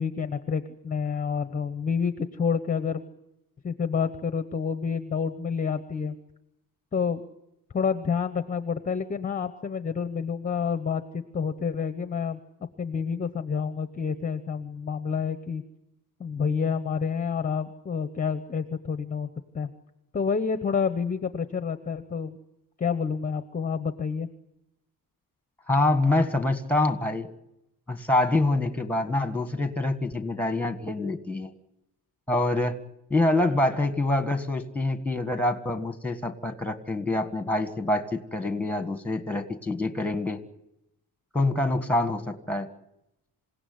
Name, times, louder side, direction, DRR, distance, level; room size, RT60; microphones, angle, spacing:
voice 1, 0.0-3.0 3.6-6.2 6.9-7.2 7.7-12.4 12.8-15.6 16.2-19.3 19.5-19.7 20.1-22.4 22.8-24.3, left 6 dB, 20° left, 10 dB, 0.9 m, -28 dB
voice 2, 25.7-27.3 27.9-31.5 32.3-32.8 33.1-40.4 41.3-42.7, left 2 dB, 5° left, 8 dB, 1.6 m, -26 dB
27.0 x 17.0 x 9.6 m, 0.89 s
cardioid pair, 175°, 38 cm